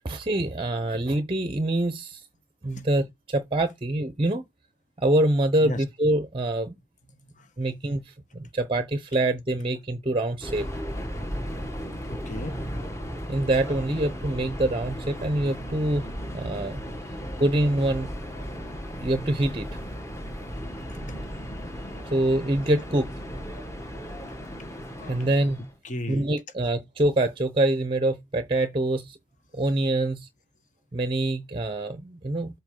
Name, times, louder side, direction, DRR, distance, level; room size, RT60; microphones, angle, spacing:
voice 1, 0.0-2.3 2.6-4.4 5.0-6.7 7.6-10.7 13.3-16.1 16.3-16.8 17.4-18.1 19.0-19.7 21.0-21.2 22.1-23.1 25.1-25.7 26.1-29.2 29.5-30.3 30.9-32.6, right 1 dB, 30° right, 0.7 m, -25 dB
voice 2, 7.1-7.5 12.1-12.8 20.9-21.0 24.6-24.7 25.0-25.2 25.8-26.3, left 1 dB, 40° left, 1.4 m, -36 dB
Subway metro underground, 10.4-25.7, equal, 15° left, 1.4 m, -35 dB
7.9 x 4.6 x 3.8 m
head